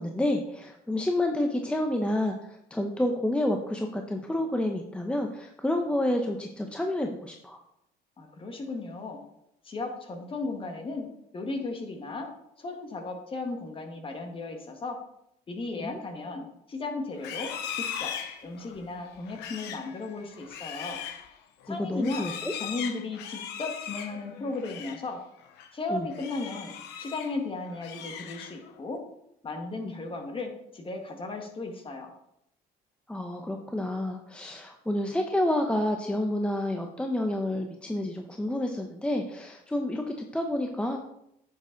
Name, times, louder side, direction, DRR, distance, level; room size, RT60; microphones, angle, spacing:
voice 1, 0.0-7.6 15.7-16.0 21.7-22.5 25.9-26.1 29.8-29.9 33.1-41.0, left 1 dB, 5° left, 3 dB, 0.8 m, -29 dB
voice 2, 8.2-9.2 9.6-11.1 11.3-12.3 12.6-15.0 15.5-17.5 17.8-18.1 18.4-21.0 21.7-22.3 22.5-25.2 25.7-29.0 29.4-32.1, left 3 dB, 30° left, 3 dB, 1.8 m, -35 dB
Livestock farm animals working animals, 17.1-25.1 25.4-25.7 26.1-27.4 27.7-28.8, left 8 dB, 90° left, 0.9 m, -39 dB
9.7 x 6.9 x 3.9 m, 0.78 s
cardioid pair, 110°, 17 cm